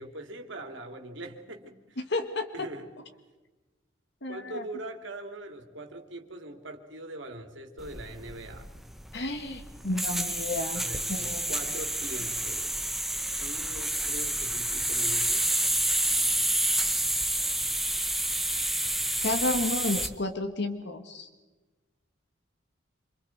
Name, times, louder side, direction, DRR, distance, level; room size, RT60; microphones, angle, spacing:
voice 1, 0.0-2.0 2.5-2.9 4.3-8.7 10.7-12.9 13.3-15.5, right 1 dB, 65° right, 4 dB, 2.9 m, -42 dB
voice 2, 2.1-2.5 4.2-4.6 9.1-10.8 11.1-11.5 19.2-21.3, left 2 dB, 55° left, 7 dB, 1.6 m, -31 dB
sound 1, 7.8-20.1, right 1 dB, ahead, 0.9 m, -29 dB
27.5 x 26.0 x 4.7 m, 1.2 s
head